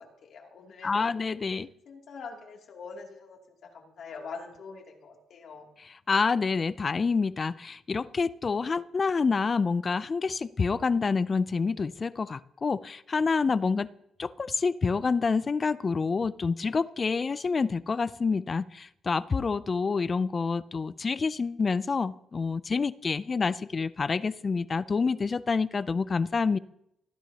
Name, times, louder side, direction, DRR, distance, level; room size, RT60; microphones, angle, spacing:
voice 1, 0.0-1.3 1.9-5.7, left 4 dB, 65° left, 0 dB, 2.7 m, -44 dB
voice 2, 0.8-1.7 5.8-13.9 14.2-26.6, left 4 dB, 35° left, 18 dB, 0.4 m, -27 dB
18.5 x 10.0 x 2.9 m, 0.80 s
cardioid pair, 90°, 0 cm